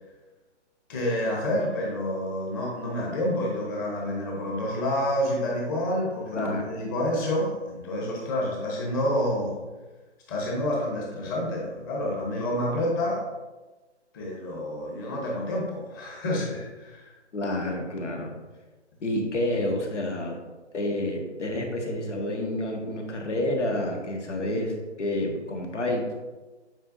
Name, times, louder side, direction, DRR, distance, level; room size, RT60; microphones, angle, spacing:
voice 1, 0.9-9.6 10.3-13.2 14.1-17.1, left 1 dB, 15° left, -3 dB, 1.1 m, -28 dB
voice 2, 6.3-6.9 17.3-18.3 19.0-20.4 20.7-26.1, left 1 dB, 80° left, 2 dB, 1.6 m, -29 dB
8.8 x 4.6 x 2.6 m, 1.2 s
hypercardioid pair, 155°, 35 cm